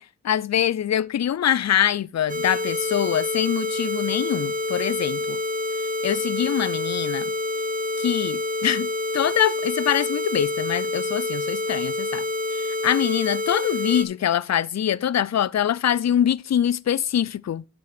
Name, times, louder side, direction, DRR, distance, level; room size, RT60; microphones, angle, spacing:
voice 1, 0.0-5.4 6.0-7.3 8.0-12.2 12.5-17.6, left 10 dB, 50° left, 0.4 m, -24 dB
sound 1, 2.3-14.0, left 2 dB, 25° right, 1.4 m, -27 dB
9.2 x 5.9 x 5.0 m
cardioid pair, 40°, 34 cm